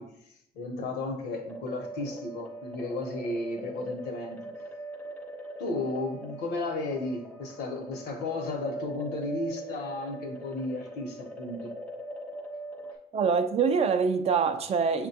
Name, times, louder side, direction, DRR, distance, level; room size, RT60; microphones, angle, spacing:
voice 1, 0.0-4.4 5.6-11.7, left 2 dB, 80° left, 0.8 m, -34 dB
sound 1, 1.5-13.0, right 1 dB, 10° left, 0.6 m, -41 dB
voice 2, 13.1-15.1, right 5 dB, 40° right, 0.4 m, -25 dB
5.9 x 2.2 x 2.7 m
cardioid pair, 110°, 17 cm